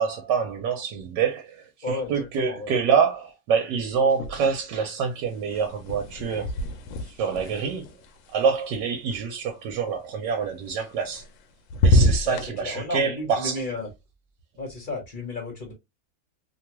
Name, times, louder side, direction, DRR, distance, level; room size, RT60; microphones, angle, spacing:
voice 1, 0.0-6.5 7.1-7.9 8.3-11.2 11.8-13.6, right 6 dB, 70° right, 1.2 m, -26 dB
voice 2, 1.8-2.8 12.2-13.9 14.6-15.7, left 2 dB, 35° left, 0.8 m, -33 dB
sound 1, 4.1-4.8 5.1-9.2 10.8-11.4 11.7-12.5, left 1 dB, 90° left, 1.3 m, -26 dB
3.1 x 2.3 x 2.9 m
omnidirectional pair, 2.0 m